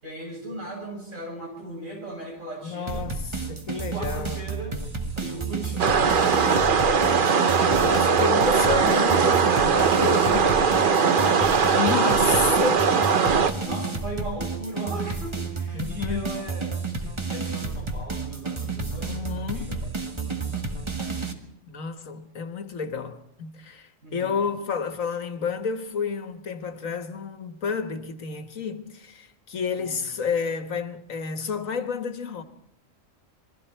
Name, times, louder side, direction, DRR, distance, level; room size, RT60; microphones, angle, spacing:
voice 1, 0.0-3.1 3.7-7.3 10.2-12.2 13.5-20.8 24.0-24.4 29.7-30.0, right 1 dB, 75° right, 8.4 m, -38 dB
voice 2, 2.6-4.4 7.8-10.6 11.7-12.9 13.8-13.9 15.7-16.5 19.1-19.9 21.7-32.4, left 6 dB, 85° left, 1.8 m, -30 dB
sound 1, 2.9-21.3, right 4 dB, 20° right, 1.7 m, -31 dB
sound 2, 5.8-13.5, right 5 dB, 45° right, 1.0 m, -20 dB
27.5 x 21.5 x 4.6 m
omnidirectional pair, 1.3 m